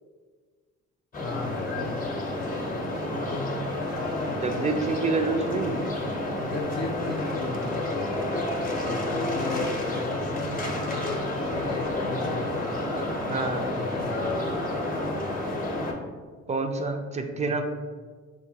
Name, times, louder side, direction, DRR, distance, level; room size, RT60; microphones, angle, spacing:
sound 1, 1.1-15.9, left 1 dB, 30° left, 0.7 m, -30 dB
voice 1, 1.2-2.0 2.5-3.6 6.4-8.2 8.8-12.7 13.3-14.6 17.2-17.7, left 3 dB, 60° left, 1 dB, 0.5 m, -36 dB
voice 2, 4.3-5.8 13.3-13.7 16.5-17.7, right 3 dB, 25° right, 5 dB, 0.4 m, -28 dB
4.5 x 2.2 x 2.8 m, 1.5 s
cardioid pair, 90°, 30 cm